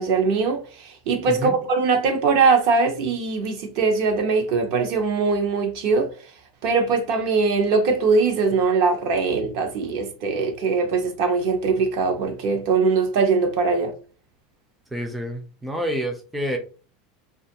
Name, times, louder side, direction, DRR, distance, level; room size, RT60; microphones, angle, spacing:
voice 1, 0.0-6.1 6.6-13.9, right 4 dB, 60° right, 0.7 m, -21 dB
voice 2, 14.9-16.6, equal, 5° right, 0.4 m, -28 dB
2.5 x 2.3 x 2.8 m
supercardioid pair, 145°, 0 cm